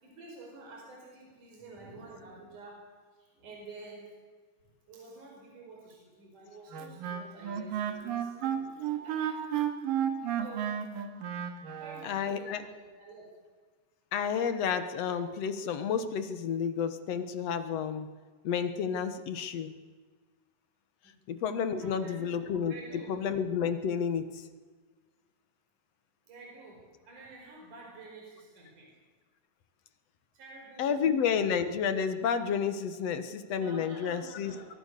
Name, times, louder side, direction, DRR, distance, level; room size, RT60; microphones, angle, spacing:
voice 1, 0.0-2.8 3.2-4.1 4.9-9.4 10.2-10.7 11.6-13.3 21.0-21.1 21.7-23.2 26.3-28.9 30.3-31.0 33.6-34.7, right 3 dB, 65° right, -1 dB, 6.3 m, -49 dB
Wind instrument woodwind instrument, 6.7-12.1, right 9 dB, 85° right, 3.7 m, -32 dB
voice 2, 12.0-12.6 14.1-18.1 18.4-19.7 21.3-22.7 23.1-24.4 30.8-34.6, left 7 dB, 60° left, 10 dB, 2.0 m, -30 dB
24.0 x 22.5 x 6.7 m, 1.4 s
omnidirectional pair, 3.9 m